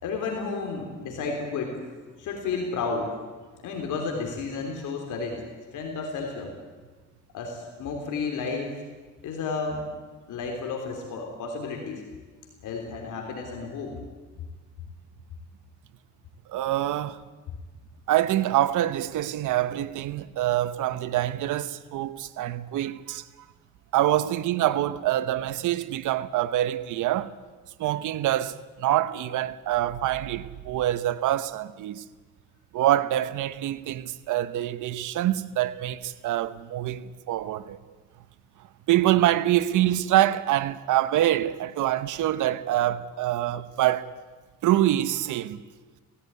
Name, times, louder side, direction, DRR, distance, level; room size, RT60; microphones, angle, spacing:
voice 1, 0.0-1.7 2.2-3.1 3.6-5.4 5.7-6.5 7.3-8.7 9.2-9.8 10.3-12.0 12.6-14.0, left 4 dB, 80° left, 3.4 m, -32 dB
voice 2, 16.5-17.2 18.1-23.2 23.9-27.3 27.8-32.1 32.7-37.8 38.9-44.1 44.6-45.6, right 13 dB, 80° right, 1.0 m, -25 dB
18.0 x 15.5 x 9.6 m
cardioid pair, 90°, 30 cm